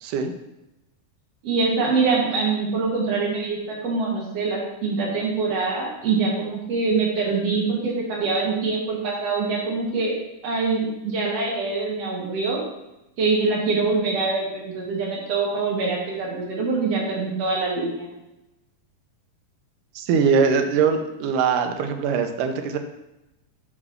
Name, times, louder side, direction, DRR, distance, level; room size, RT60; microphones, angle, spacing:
voice 1, 0.0-0.3 20.0-22.8, right 6 dB, 80° right, 7 dB, 2.2 m, -22 dB
voice 2, 1.4-10.1 10.4-12.6 13.2-18.1, right 4 dB, 55° right, -3 dB, 2.6 m, -24 dB
7.1 x 4.9 x 5.7 m, 0.94 s
omnidirectional pair, 3.7 m